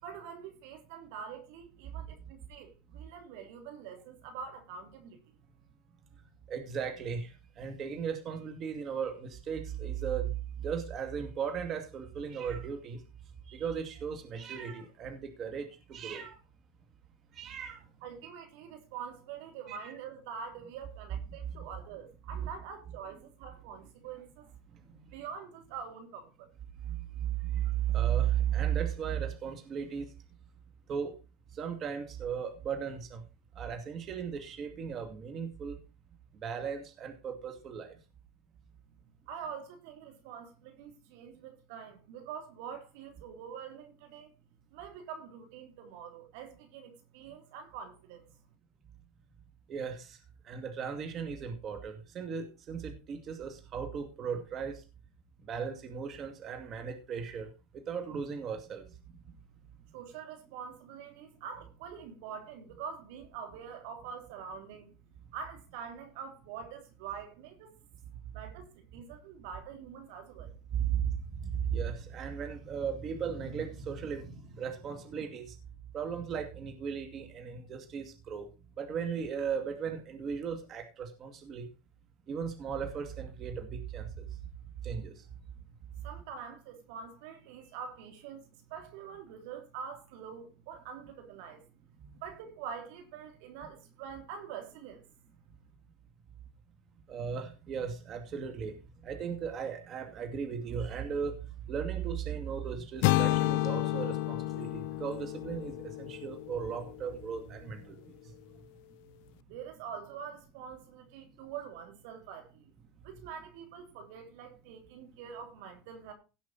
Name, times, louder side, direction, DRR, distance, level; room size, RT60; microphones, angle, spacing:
voice 1, 0.0-5.3 18.0-24.5 25.1-26.3 39.3-44.3 44.7-48.3 59.9-64.9 65.3-67.7 68.3-70.6 86.0-91.6 92.2-95.0 109.5-112.7 113.0-116.1, right 7 dB, 75° right, 3.2 m, -45 dB
voice 2, 6.5-10.3 10.6-13.0 13.5-16.4 17.3-17.8 19.7-19.9 22.3-22.5 26.9-27.0 27.5-30.1 30.9-31.1 31.5-33.2 33.6-35.8 36.4-37.9 49.7-50.2 50.5-54.8 55.5-58.8 70.7-71.1 71.4-75.5 75.9-78.5 78.8-81.7 82.3-84.2 84.8-85.1 92.0-92.1 97.1-98.7 99.0-101.4 101.7-108.0, right 7 dB, 40° right, 2.4 m, -36 dB
sound 1, 103.0-107.0, left 17 dB, 70° left, 0.5 m, -30 dB
17.0 x 6.0 x 4.3 m
supercardioid pair, 105°, 0 cm